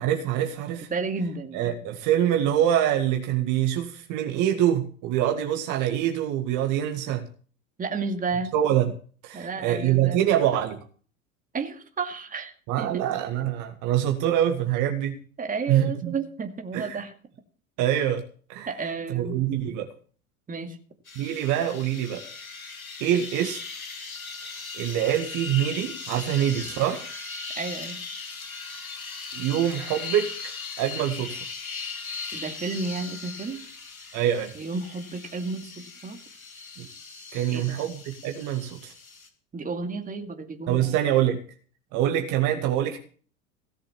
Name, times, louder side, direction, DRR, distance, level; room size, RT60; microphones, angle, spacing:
voice 1, 0.0-0.9 1.5-7.3 8.5-8.9 9.2-10.8 12.7-15.2 15.7-16.1 16.7-17.0 17.8-18.2 18.5-18.7 19.1-19.9 21.2-22.2 23.0-23.6 24.7-27.0 29.3-31.5 34.1-34.5 36.8-36.9 37.3-38.9 40.7-41.4 41.9-43.0, right 11 dB, 45° right, 5 dB, 1.9 m, -25 dB
voice 2, 0.9-1.7 7.8-8.5 9.3-10.2 11.5-13.0 15.4-17.1 18.7-19.4 20.5-20.8 27.6-28.0 32.3-33.6 34.5-36.2 37.5-37.8 39.5-41.0, right 4 dB, 20° right, 5 dB, 2.4 m, -32 dB
sound 1, 21.1-39.3, left 4 dB, 85° left, 2.2 m, -38 dB
17.5 x 7.5 x 7.2 m, 0.43 s
figure-of-eight pair, 75°, 41 cm